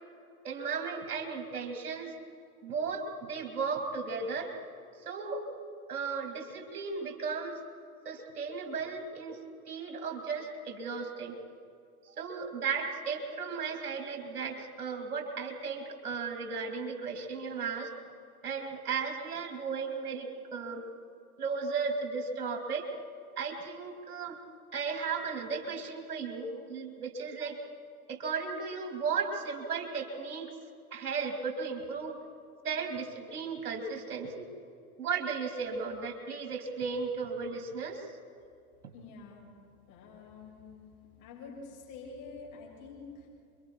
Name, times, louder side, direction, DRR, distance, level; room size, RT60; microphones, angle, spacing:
voice 1, 0.4-2.1 2.6-4.5 5.0-5.5 5.9-7.6 8.0-9.4 9.7-11.3 12.1-17.9 18.4-20.9 21.4-22.9 23.4-24.4 24.7-27.6 28.1-30.5 30.9-32.2 32.6-34.5 35.0-38.1, right 5 dB, 75° right, 3 dB, 3.0 m, -35 dB
voice 2, 38.9-39.5 39.9-40.9 41.2-43.3, left 4 dB, 45° left, -2 dB, 7.8 m, -47 dB
28.5 x 24.0 x 4.7 m, 2.5 s
hypercardioid pair, 95°, 44 cm